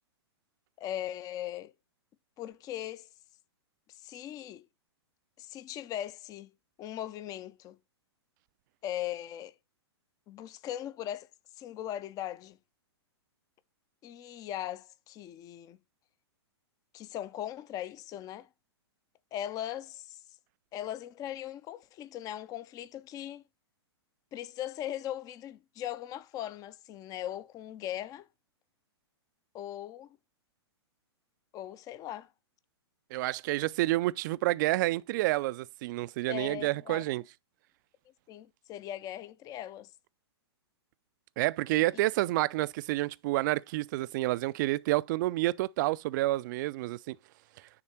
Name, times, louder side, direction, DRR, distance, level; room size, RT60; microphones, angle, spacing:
voice 1, 0.8-1.7 2.4-3.1 3.9-4.7 5.4-6.5 6.8-7.8 8.8-9.5 10.3-11.3 11.6-12.6 14.0-15.8 16.9-18.5 19.3-20.2 20.7-23.4 24.3-28.3 29.5-30.1 31.5-32.3 36.3-37.0 38.3-39.9, left 12 dB, 25° left, 0.5 m, -39 dB
voice 2, 33.1-37.2 41.4-47.2, right 18 dB, 45° right, 0.4 m, -29 dB
9.7 x 3.6 x 4.4 m
hypercardioid pair, 115°, 14 cm